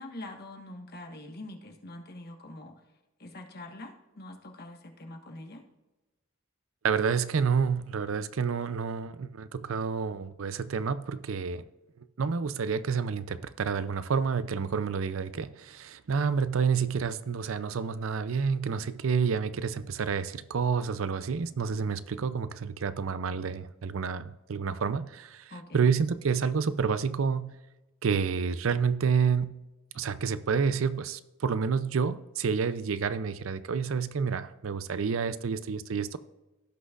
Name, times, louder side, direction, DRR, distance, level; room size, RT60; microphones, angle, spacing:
voice 1, 0.0-2.7 3.2-5.6 25.5-25.9, left 1 dB, 50° left, 1.4 m, -44 dB
voice 2, 6.8-11.6 12.0-27.5 28.0-29.6 29.9-36.2, right 6 dB, 70° right, 0.5 m, -29 dB
16.0 x 6.2 x 2.4 m
head